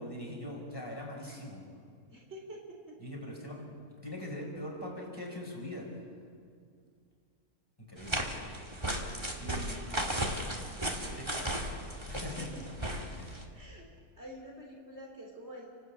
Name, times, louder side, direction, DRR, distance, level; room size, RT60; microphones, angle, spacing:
voice 1, 0.0-1.6 3.0-3.7 4.0-5.9 7.8-8.2 9.4-9.8 11.2-11.3 12.1-12.5 13.2-13.3, left 1 dB, 15° left, -2 dB, 5.1 m, -41 dB
voice 2, 2.1-2.6 9.4-10.1 11.0-11.2 12.3-12.5 13.5-13.9 14.2-15.7, equal, 45° right, -1 dB, 3.6 m, -48 dB
sound 1, 8.0-13.4, right 1 dB, 15° right, 2.0 m, -35 dB
30.0 x 12.5 x 8.7 m, 2.1 s
omnidirectional pair, 1.6 m